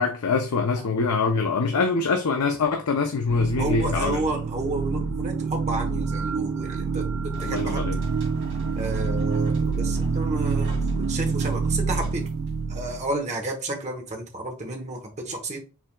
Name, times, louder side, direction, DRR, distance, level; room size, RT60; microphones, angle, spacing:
voice 1, 0.0-4.2 7.4-8.0, left 4 dB, 75° left, 0.6 m, -24 dB
sound 1, 3.3-13.1, right 4 dB, 70° right, 0.4 m, -27 dB
voice 2, 3.6-7.8 8.8-12.3 12.7-15.6, right 2 dB, 30° right, 1.0 m, -31 dB
sound 2, 7.3-13.1, right 1 dB, 55° right, 2.2 m, -47 dB
5.8 x 3.4 x 2.3 m
head